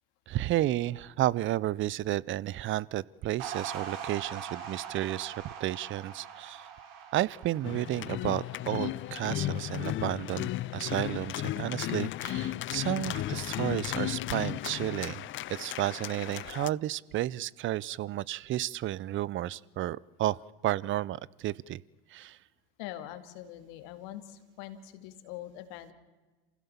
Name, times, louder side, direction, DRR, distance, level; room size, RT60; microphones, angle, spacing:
voice 1, 0.3-6.7 7.1-20.4 20.6-21.8 22.1-22.4, right 14 dB, 45° right, 23 dB, 0.6 m, -32 dB
sound 1, 3.4-9.9, right 7 dB, 75° right, 3.0 m, -43 dB
sound 2, 7.6-16.7, left 14 dB, 40° left, 0.6 m, -35 dB
voice 2, 22.8-25.9, left 12 dB, 70° left, 8 dB, 2.2 m, -43 dB
27.5 x 16.0 x 7.1 m, 1.3 s
hypercardioid pair, 80°, 29 cm